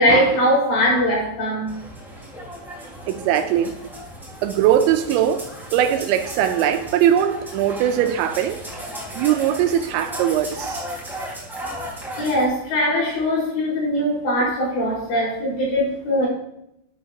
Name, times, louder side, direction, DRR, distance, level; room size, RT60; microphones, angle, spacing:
voice 1, 0.0-1.7 12.2-16.3, equal, 65° left, 7.1 m, -21 dB
sound 1, 1.7-12.4, equal, ahead, 2.6 m, -35 dB
voice 2, 3.1-3.8 4.4-8.6 9.1-10.8 14.4-14.5, right 10 dB, 80° right, 2.8 m, -20 dB
12.0 x 11.0 x 2.9 m
omnidirectional pair, 5.4 m